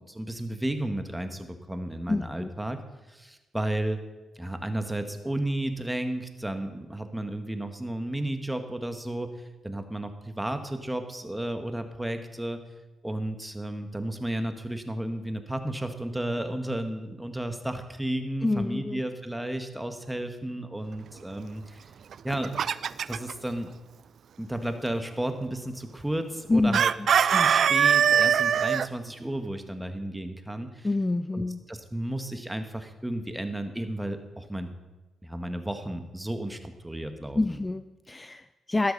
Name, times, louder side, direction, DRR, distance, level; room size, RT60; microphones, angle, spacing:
voice 1, 0.0-2.8 3.1-4.0 4.4-9.3 9.6-12.6 13.0-21.8 22.2-23.7 24.4-30.9 31.3-31.4 31.7-34.7 35.2-37.6, right 1 dB, 10° right, 7 dB, 1.8 m, -33 dB
voice 2, 2.1-2.5 18.4-19.0 26.5-26.8 30.8-31.6 37.3-38.9, left 2 dB, 20° left, 12 dB, 0.4 m, -27 dB
Chicken rooster, 22.1-23.3 26.7-28.9, right 8 dB, 60° right, 0.3 m, -22 dB
13.0 x 12.0 x 4.2 m, 1.1 s
hypercardioid pair, 45°, 0 cm